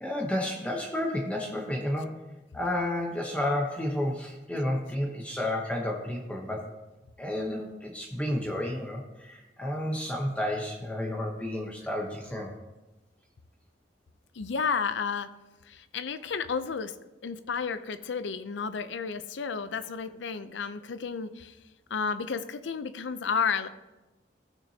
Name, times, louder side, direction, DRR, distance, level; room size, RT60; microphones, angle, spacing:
voice 1, 0.0-2.1 2.5-6.7 7.2-12.5, left 1 dB, 5° left, -1 dB, 0.9 m, -31 dB
voice 2, 14.3-15.3 15.6-16.9 17.2-21.6 21.9-23.7, left 5 dB, 90° left, 12 dB, 0.6 m, -32 dB
16.0 x 6.1 x 2.8 m, 1.1 s
head